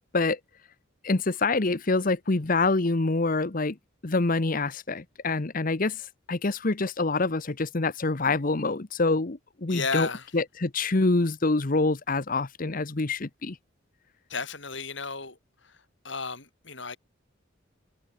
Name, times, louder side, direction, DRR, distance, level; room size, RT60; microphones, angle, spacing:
voice 1, 1.0-3.8 4.0-6.0 6.3-10.1 10.3-13.6, left 3 dB, 45° left, 1.0 m, -26 dB
voice 2, 9.7-10.3 14.3-15.4 15.6-15.8 16.0-17.0, left 4 dB, 65° left, 6.5 m, -33 dB
head